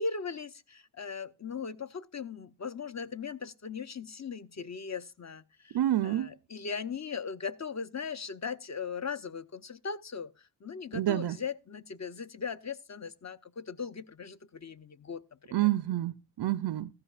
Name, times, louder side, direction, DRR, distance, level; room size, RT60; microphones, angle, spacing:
voice 1, 0.0-15.6, left 5 dB, 35° left, 0.8 m, -39 dB
voice 2, 5.7-6.3 10.9-11.4 15.5-16.9, right 14 dB, 60° right, 0.5 m, -28 dB
15.5 x 13.5 x 2.4 m
cardioid pair, 60°, 46 cm